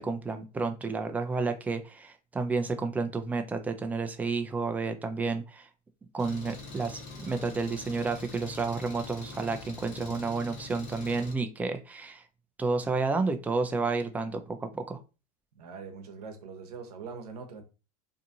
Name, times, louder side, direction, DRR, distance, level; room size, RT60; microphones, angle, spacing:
voice 1, 0.0-5.7 6.1-12.2 12.6-15.0, right 4 dB, 10° right, 0.3 m, -31 dB
Engine, 6.2-11.3, left 3 dB, 40° left, 1.0 m, -44 dB
voice 2, 15.5-17.6, right 5 dB, 90° right, 0.8 m, -42 dB
2.7 x 2.4 x 2.6 m
supercardioid pair, 120°, 19 cm